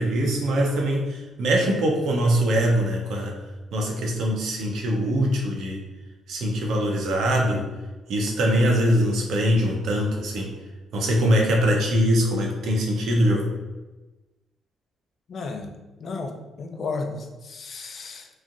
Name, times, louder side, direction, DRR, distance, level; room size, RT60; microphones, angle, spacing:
voice 1, 0.0-3.3 3.7-5.8 6.3-7.7 8.1-10.5 10.9-13.5, equal, 75° right, 0 dB, 0.7 m, -22 dB
voice 2, 15.3-15.7 16.0-18.3, left 3 dB, 50° left, 4 dB, 0.4 m, -33 dB
3.1 x 2.5 x 2.5 m, 1.1 s
cardioid pair, 90°, 0 cm